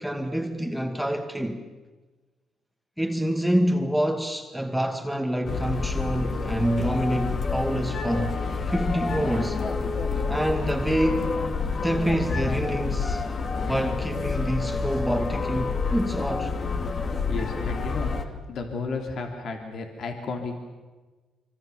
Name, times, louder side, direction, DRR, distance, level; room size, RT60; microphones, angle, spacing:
voice 1, 0.0-1.6 3.0-9.6 10.3-11.3 11.8-13.2 13.6-16.6, equal, ahead, 2.0 m, -27 dB
sound 1, 5.5-18.2, left 4 dB, 45° left, 2.4 m, -28 dB
voice 2, 17.3-18.2 18.5-20.6, left 4 dB, 65° left, 3.2 m, -33 dB
25.0 x 25.0 x 7.1 m
cardioid pair, 90°, 0 cm